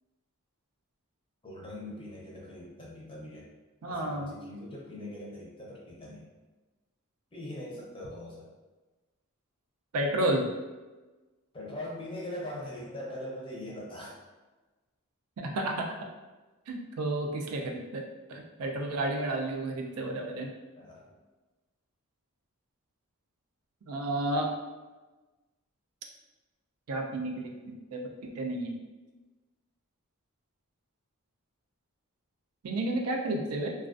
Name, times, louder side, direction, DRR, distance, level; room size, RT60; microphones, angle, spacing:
voice 1, 1.4-3.5 3.9-6.3 7.3-8.5 11.5-14.2 20.7-21.2, left 1 dB, 25° left, -4 dB, 0.5 m, -41 dB
voice 2, 3.8-4.3 9.9-10.5 15.4-15.9 16.7-18.0 18.3-20.5 23.9-24.5 26.9-28.8 32.6-33.7, right 1 dB, 80° right, 2 dB, 0.4 m, -31 dB
2.3 x 2.3 x 2.4 m, 1.2 s
head